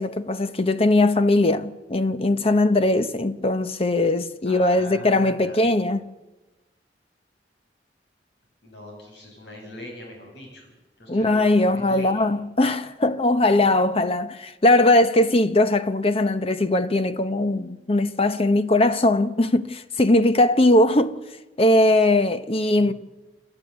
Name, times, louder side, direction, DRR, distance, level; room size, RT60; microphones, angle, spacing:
voice 1, 0.0-6.1 11.1-21.2 21.6-22.9, left 2 dB, 35° left, 0.9 m, -20 dB
voice 2, 4.4-5.6 8.6-10.7 11.0-12.3 22.8-22.9, left 1 dB, 85° left, 7.7 m, -41 dB
28.0 x 12.0 x 8.2 m
head